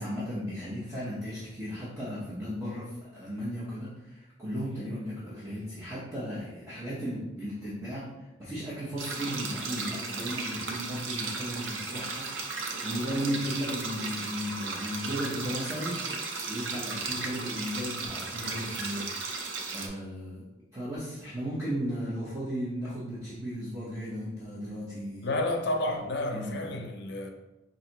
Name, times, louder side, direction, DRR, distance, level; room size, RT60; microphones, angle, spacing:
voice 1, 0.0-19.1 19.4-20.4 20.7-25.3 26.3-26.8, equal, 15° right, 0.8 m, -35 dB
sound 1, 9.0-19.9, right 4 dB, 90° right, 0.6 m, -35 dB
voice 2, 25.2-27.3, left 1 dB, 60° left, 0.5 m, -30 dB
4.6 x 2.6 x 2.9 m
head